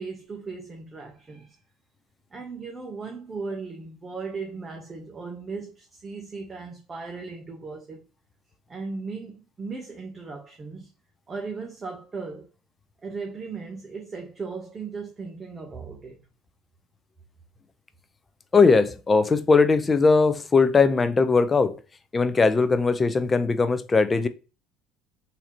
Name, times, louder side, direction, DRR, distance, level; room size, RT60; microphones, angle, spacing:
voice 1, 0.0-1.6 2.3-8.1 8.7-10.9 11.3-12.5 13.0-16.2, right 4 dB, 25° right, 0.8 m, -37 dB
voice 2, 18.5-21.8 22.1-24.3, left 4 dB, 25° left, 0.5 m, -20 dB
4.0 x 2.8 x 2.9 m
supercardioid pair, 95°, 0 cm